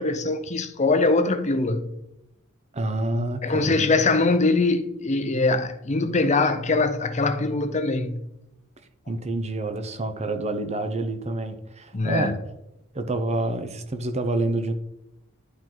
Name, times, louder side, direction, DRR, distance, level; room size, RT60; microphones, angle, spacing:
voice 1, 0.0-1.9 3.4-8.2 11.9-12.4, left 3 dB, 35° left, 0.7 m, -22 dB
voice 2, 2.7-3.9 9.1-12.4 12.9-14.7, right 2 dB, 30° right, 0.8 m, -27 dB
11.0 x 4.5 x 3.9 m
head